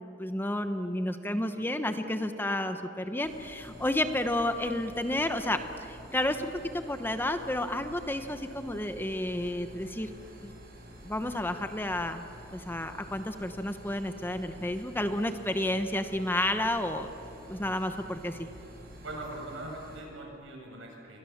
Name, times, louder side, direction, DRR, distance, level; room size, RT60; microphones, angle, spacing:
voice 1, 0.2-10.1 10.4-10.5 11.0-12.2 12.5-17.1 17.5-18.5, left 1 dB, 10° left, 8 dB, 1.0 m, -31 dB
sound 1, 3.2-20.0, equal, 55° right, 5.7 m, -49 dB
voice 2, 19.0-21.2, right 1 dB, 75° right, 0 dB, 7.6 m, -41 dB
28.5 x 24.0 x 7.3 m, 2.9 s
head